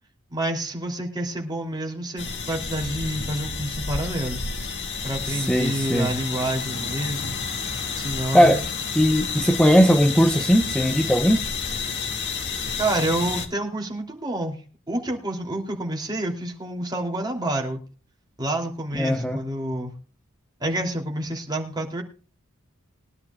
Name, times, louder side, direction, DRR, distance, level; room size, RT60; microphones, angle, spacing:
voice 1, 0.3-4.4 5.0-7.4 8.0-8.6 12.8-14.6 14.9-17.8 18.4-19.9 20.6-22.0, right 1 dB, 20° right, 1 dB, 3.0 m, -28 dB
sound 1, 2.2-13.5, left 5 dB, 55° left, 2.1 m, -30 dB
voice 2, 5.2-6.1 8.3-8.6 8.9-11.4 18.9-19.4, equal, 5° left, 6 dB, 0.8 m, -19 dB
22.0 x 11.0 x 2.4 m, 0.38 s
head